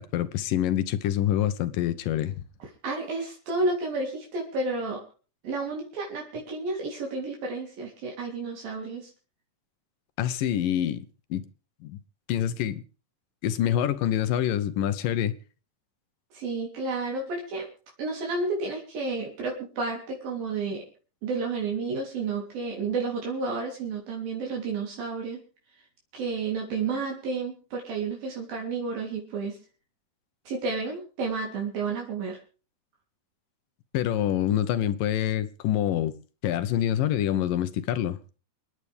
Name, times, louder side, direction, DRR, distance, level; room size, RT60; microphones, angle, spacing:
voice 1, 0.0-2.4 10.2-11.0 11.3-11.4 11.8-12.0 12.3-12.8 13.4-15.4 33.9-36.2 36.4-38.2, left 11 dB, 70° left, 2.6 m, -26 dB
voice 2, 2.6-5.0 5.4-9.1 16.3-17.7 18.0-20.8 21.2-25.4 26.1-29.6 30.5-32.4, right 3 dB, 70° right, 5.0 m, -31 dB
27.5 x 9.9 x 3.4 m
omnidirectional pair, 4.3 m